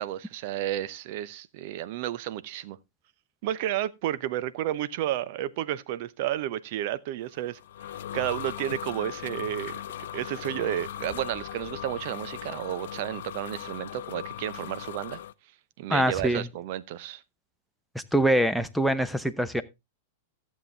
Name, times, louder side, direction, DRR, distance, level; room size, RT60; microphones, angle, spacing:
voice 1, 0.0-2.8 3.4-7.6 7.9-9.8 10.1-15.2 15.8-17.2, right 12 dB, 50° right, 0.8 m, -32 dB
sound 1, 7.3-15.3, left 12 dB, 60° left, 0.5 m, -38 dB
voice 2, 15.9-16.5 17.9-19.6, right 1 dB, ahead, 0.8 m, -24 dB
14.0 x 7.5 x 3.4 m
figure-of-eight pair, 95°, 0 cm